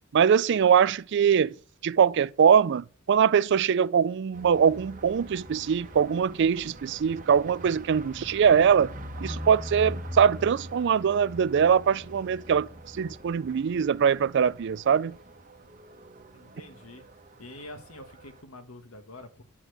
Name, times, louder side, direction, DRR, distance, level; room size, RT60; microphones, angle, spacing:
voice 1, 0.1-1.6 1.8-8.9 9.2-12.7 12.9-15.2, right 7 dB, 55° right, 0.4 m, -22 dB
sound 1, 4.3-18.4, equal, 40° right, 1.6 m, -43 dB
voice 2, 16.3-17.1 17.4-19.4, left 1 dB, 90° left, 1.8 m, -46 dB
11.0 x 4.4 x 8.0 m
head